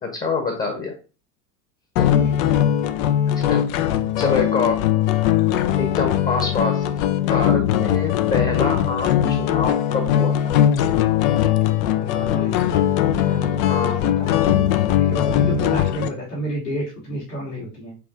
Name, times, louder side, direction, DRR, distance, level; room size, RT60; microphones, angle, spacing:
voice 1, 0.0-0.9 2.0-2.3 3.3-3.7 4.2-4.8 5.8-6.9 7.2-10.5 13.6-14.0, left 4 dB, 20° left, 4 dB, 1.1 m, -26 dB
voice 2, 2.0-2.9 5.6-5.8 7.7-8.0 11.7-12.9 13.2-14.6 14.9-18.0, equal, 75° left, -6 dB, 2.7 m, -31 dB
sound 1, 2.0-16.1, left 11 dB, 40° left, 0.5 m, -20 dB
6.8 x 2.9 x 2.6 m, 0.34 s
hypercardioid pair, 90°, 47 cm